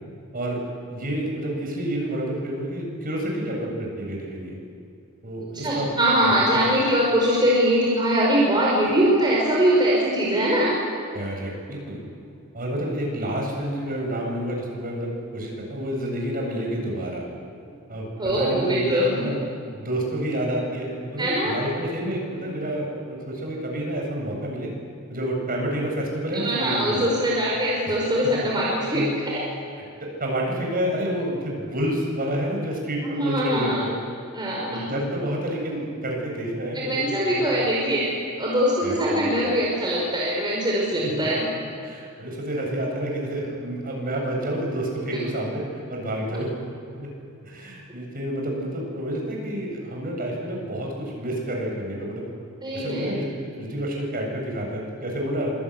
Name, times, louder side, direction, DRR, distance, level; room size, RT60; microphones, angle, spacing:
voice 1, 0.9-4.6 5.2-5.9 6.2-6.7 8.7-8.9 11.1-12.0 12.5-17.2 17.9-19.4 19.7-24.7 25.1-27.0 27.9-28.0 28.9-29.1 29.8-33.9 34.6-37.5 38.8-39.6 41.0-41.2 41.8-45.6 45.9-46.5 46.9-47.1 47.4-52.3 52.7-55.5, right 1 dB, 40° right, 0 dB, 8.0 m, -29 dB
voice 2, 5.5-10.7 18.2-19.1 21.2-21.5 26.3-29.4 33.0-33.8 34.3-34.8 36.7-38.1 38.4-41.4 52.6-53.1, right 1 dB, 20° right, -4 dB, 5.4 m, -22 dB
26.0 x 22.5 x 9.8 m, 2.5 s
head